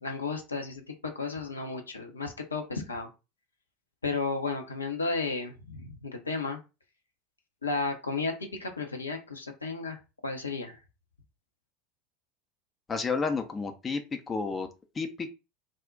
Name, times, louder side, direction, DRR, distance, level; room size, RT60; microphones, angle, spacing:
voice 1, 0.0-3.1 4.0-6.6 7.6-10.8, left 3 dB, 85° left, 3 dB, 0.6 m, -33 dB
voice 2, 12.9-14.7 14.9-15.3, left 4 dB, 25° left, 6 dB, 0.5 m, -31 dB
2.4 x 2.1 x 3.6 m, 0.28 s
figure-of-eight pair, 75°, 0 cm